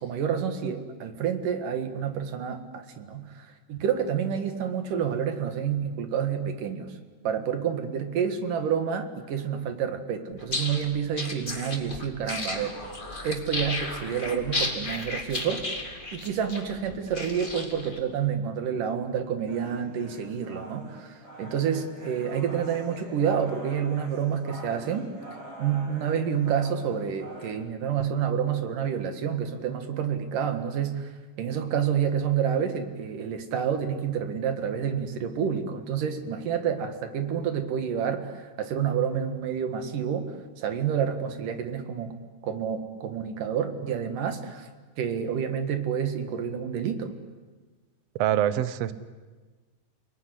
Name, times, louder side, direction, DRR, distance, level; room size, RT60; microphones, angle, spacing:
voice 1, 0.0-7.0 7.2-12.8 13.2-15.6 16.1-25.1 25.6-42.2 42.4-44.7 45.0-47.1, right 8 dB, 85° right, 8 dB, 3.4 m, -29 dB
sound 1, 10.4-18.0, left 2 dB, 15° left, 2.3 m, -33 dB
sound 2, 19.5-27.5, right 1 dB, 45° right, 8.6 m, -44 dB
voice 2, 48.2-48.9, right 11 dB, 65° right, 14 dB, 1.9 m, -24 dB
29.5 x 19.5 x 10.0 m, 1.3 s
omnidirectional pair, 3.7 m